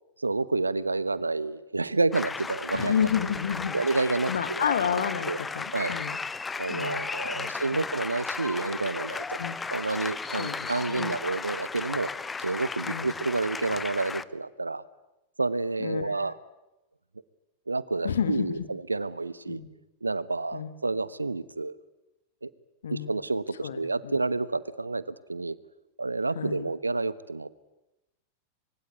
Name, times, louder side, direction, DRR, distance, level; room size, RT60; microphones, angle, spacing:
voice 1, 0.2-3.1 3.7-4.6 5.3-5.4 5.7-6.0 6.6-9.4 9.7-12.1 12.4-14.8 15.4-16.3 17.7-19.6 20.0-21.7 22.4-22.5 22.9-25.0 25.3-25.6 26.0-27.5, right 3 dB, 80° right, 18 dB, 1.1 m, -29 dB
sound 1, 2.1-14.2, left 4 dB, 15° left, 0.9 m, -35 dB
voice 2, 2.7-6.2 6.7-7.8 9.4-9.6 10.4-11.2 12.9-13.1 15.8-16.2 18.0-18.7 19.5-19.7 20.5-20.7 22.8-23.1 23.6-24.2 26.3-26.7, left 8 dB, 65° left, 11 dB, 2.1 m, -31 dB
25.5 x 24.0 x 9.5 m, 0.94 s
figure-of-eight pair, 90°, 0 cm